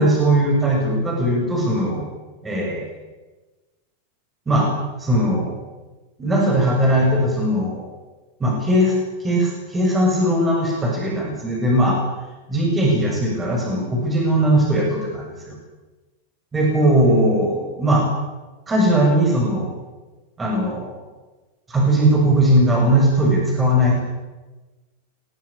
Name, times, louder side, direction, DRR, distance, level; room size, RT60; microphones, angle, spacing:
voice 1, 0.0-2.1 2.4-2.9 4.5-4.7 5.0-5.6 6.2-7.9 8.4-8.9 9.2-12.0 12.5-15.5 16.5-18.1 18.7-19.8 20.4-21.0 21.7-24.0, right 1 dB, 10° right, -1 dB, 7.3 m, -19 dB
24.5 x 18.0 x 8.9 m, 1.2 s
supercardioid pair, 155°, 0 cm